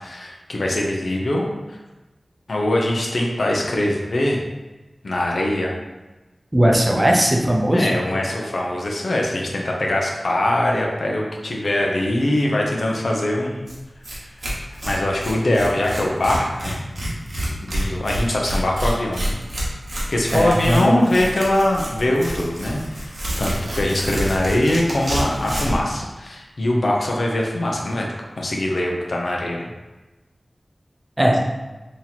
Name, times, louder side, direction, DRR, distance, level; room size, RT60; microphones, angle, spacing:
voice 1, 0.0-1.8 2.5-4.4 5.0-5.7 7.0-7.1 7.7-13.7 14.7-16.8 17.6-19.4 20.1-23.1 23.4-28.1 28.4-29.7, left 1 dB, 80° left, -1 dB, 0.7 m, -22 dB
voice 2, 6.5-7.9 20.3-20.8 31.2-31.4, equal, 25° right, 0 dB, 0.6 m, -17 dB
Tearing, 13.7-13.8 14.0-14.2 14.4-25.8, equal, 70° right, 1.0 m, -28 dB
3.0 x 2.8 x 4.0 m, 1.1 s
wide cardioid pair, 50°, 0 cm